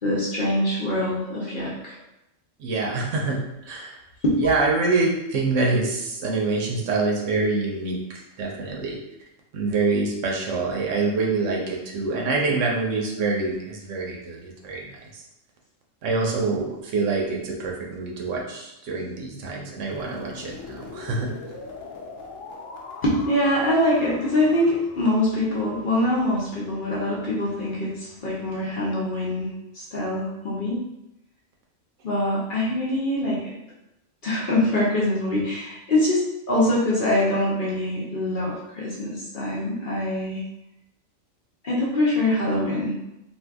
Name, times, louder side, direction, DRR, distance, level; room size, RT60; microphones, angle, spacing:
voice 1, 0.0-1.9 4.2-4.4 23.0-29.5 29.7-30.8 32.0-33.5 34.2-36.2 36.5-40.4 41.6-42.9, left 1 dB, 50° left, -6 dB, 0.7 m, -24 dB
voice 2, 2.6-3.4 3.7-4.0 4.4-8.0 8.4-9.0 9.5-14.8 16.0-21.3, right 3 dB, 70° right, -1 dB, 1.0 m, -25 dB
sound 1, 19.9-25.8, left 3 dB, 75° left, 1.0 m, -41 dB
2.6 x 2.4 x 3.4 m, 0.89 s
omnidirectional pair, 1.4 m